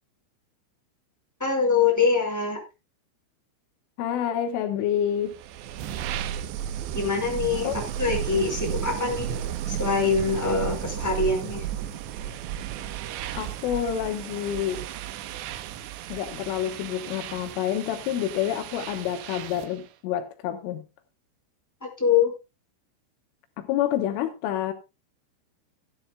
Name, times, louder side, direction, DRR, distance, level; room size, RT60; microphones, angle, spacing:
voice 1, 1.4-2.6 6.9-11.7 21.8-22.3, left 5 dB, 5° left, 4.6 m, -24 dB
voice 2, 4.0-5.4 7.6-7.8 13.4-14.8 16.1-20.9 23.6-24.7, left 10 dB, 80° left, 3.5 m, -28 dB
sound 1, 5.2-19.8, right 10 dB, 75° right, 2.7 m, -34 dB
16.5 x 12.0 x 2.3 m
omnidirectional pair, 5.9 m